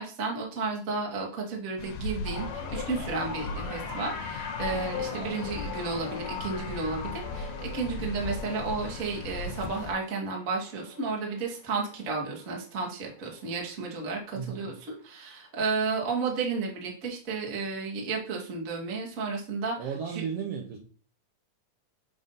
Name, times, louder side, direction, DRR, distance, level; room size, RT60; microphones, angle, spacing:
voice 1, 0.0-19.7, right 4 dB, 45° right, -2 dB, 1.1 m, -32 dB
sound 1, 1.8-10.0, left 3 dB, 90° left, 2.2 m, -38 dB
sound 2, 2.3-12.7 13.0-13.4 14.6-14.7, left 6 dB, 70° left, 2.1 m, -40 dB
voice 2, 14.3-14.7 19.8-20.8, right 7 dB, 70° right, 1 dB, 1.5 m, -35 dB
7.5 x 2.7 x 5.3 m, 0.41 s
omnidirectional pair, 3.5 m